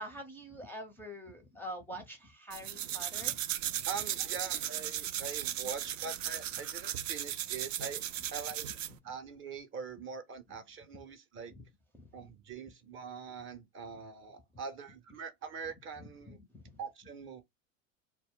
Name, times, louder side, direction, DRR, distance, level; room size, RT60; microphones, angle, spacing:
voice 1, 0.0-3.4 9.0-9.1 11.5-11.6 11.9-12.3 16.0-16.6, equal, 5° left, 0.5 m, -45 dB
sound 1, 2.5-9.0, right 12 dB, 70° right, 0.5 m, -36 dB
voice 2, 3.9-8.0 8.3-8.7 9.0-11.5 12.1-16.4 16.8-17.4, right 5 dB, 30° right, 0.6 m, -43 dB
2.1 x 2.1 x 3.6 m
hypercardioid pair, 90°, 40 cm